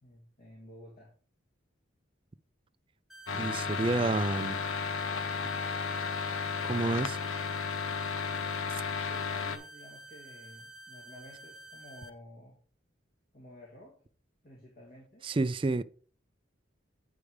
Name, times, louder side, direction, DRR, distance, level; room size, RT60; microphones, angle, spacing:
voice 1, 0.0-1.1 9.0-12.6 13.3-14.0 14.4-15.3, equal, 45° left, 2.3 m, -52 dB
sound 1, 3.1-12.1, right 1 dB, ahead, 0.9 m, -50 dB
sound 2, 3.3-9.6, left 5 dB, 85° left, 0.8 m, -33 dB
voice 2, 3.3-4.6 6.6-7.2 15.2-15.8, right 3 dB, 25° right, 0.3 m, -29 dB
8.5 x 4.9 x 4.8 m
head